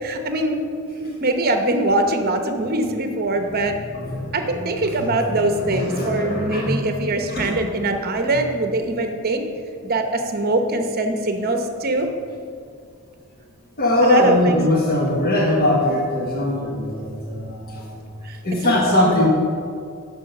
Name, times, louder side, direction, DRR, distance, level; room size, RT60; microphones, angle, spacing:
voice 1, 0.0-0.6 1.0-3.7 4.3-9.4 9.8-12.1 14.0-14.6 18.3-18.4 18.6-19.2, right 2 dB, 45° right, 5 dB, 0.9 m, -22 dB
voice 2, 3.9-5.1 5.3-6.8 7.3-7.6 13.8-18.0 18.4-19.3, left 1 dB, 45° left, -3 dB, 1.3 m, -21 dB
9.8 x 6.4 x 5.4 m, 2.3 s
head